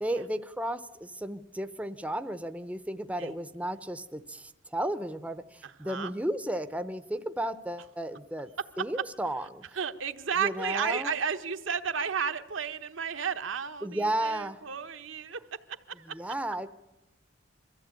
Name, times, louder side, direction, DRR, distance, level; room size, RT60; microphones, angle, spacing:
voice 1, 0.0-8.5 8.8-9.8 10.4-11.1 13.8-14.6 16.1-16.7, right 1 dB, 5° right, 11 dB, 0.6 m, -33 dB
voice 2, 5.6-6.1 9.7-15.6 15.9-16.2, right 6 dB, 80° right, 8 dB, 1.0 m, -33 dB
22.5 x 14.5 x 8.9 m, 1.1 s
head